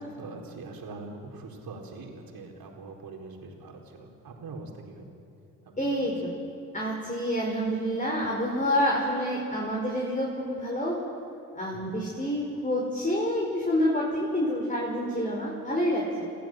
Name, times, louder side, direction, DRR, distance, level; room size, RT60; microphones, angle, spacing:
voice 1, 0.2-5.1 5.6-6.1 11.7-12.0, right 3 dB, 55° right, 1 dB, 4.3 m, -43 dB
voice 2, 5.8-6.3 6.7-11.0 11.5-16.0, equal, 20° left, -2 dB, 5.3 m, -28 dB
28.5 x 15.0 x 7.8 m, 2.7 s
hypercardioid pair, 50°, 41 cm